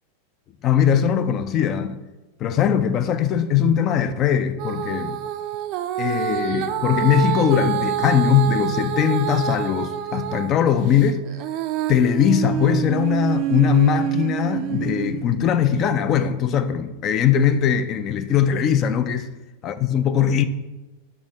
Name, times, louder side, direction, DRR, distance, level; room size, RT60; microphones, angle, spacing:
voice 1, 0.6-2.0 2.4-5.2 6.0-11.2 11.9-19.3 19.6-20.4, left 8 dB, 35° left, 0.4 m, -20 dB
Female singing, 4.6-10.5 10.9-15.2 15.8-15.9, right 11 dB, 40° right, 0.4 m, -26 dB
6.1 x 3.3 x 4.9 m
figure-of-eight pair, 90°, 0 cm